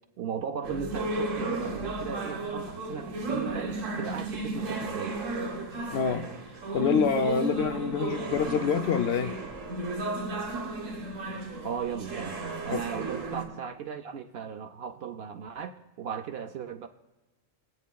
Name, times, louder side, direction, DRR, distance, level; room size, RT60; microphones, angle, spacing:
voice 1, 0.2-5.2 11.6-16.9, right 7 dB, 65° right, 7 dB, 0.7 m, -37 dB
sound 1, 0.6-13.4, right 2 dB, 80° right, 1.6 m, -34 dB
voice 2, 5.9-6.3 6.7-9.3 12.7-12.8, left 6 dB, 65° left, 7 dB, 0.8 m, -26 dB
24.5 x 8.4 x 2.3 m, 1.1 s
omnidirectional pair, 1.3 m